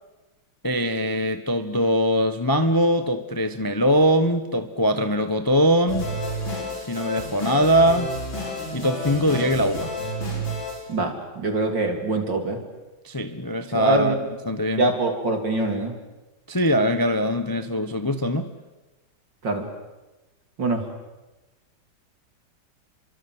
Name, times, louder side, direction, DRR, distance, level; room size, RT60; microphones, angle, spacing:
voice 1, 0.6-6.1 6.9-8.1 8.7-9.9 13.0-14.1 14.5-14.8 16.5-18.5, equal, 15° left, 9 dB, 1.0 m, -22 dB
sound 1, 5.9-10.9, equal, 65° left, 6.8 m, -30 dB
voice 2, 10.9-12.6 13.7-14.2 14.8-16.0 19.4-19.7 20.6-20.8, right 2 dB, 60° right, 4 dB, 4.0 m, -24 dB
30.0 x 24.0 x 8.0 m, 1.1 s
omnidirectional pair, 2.3 m